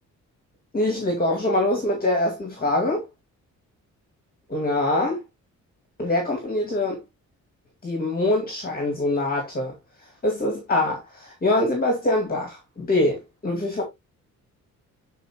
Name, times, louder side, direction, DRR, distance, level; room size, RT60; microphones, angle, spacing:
voice 1, 0.7-3.1 4.5-5.2 6.0-7.0 7.8-9.7 10.2-13.8, left 1 dB, 30° left, 2.3 m, -24 dB
7.9 x 4.5 x 3.0 m
cardioid pair, 90°, 30 cm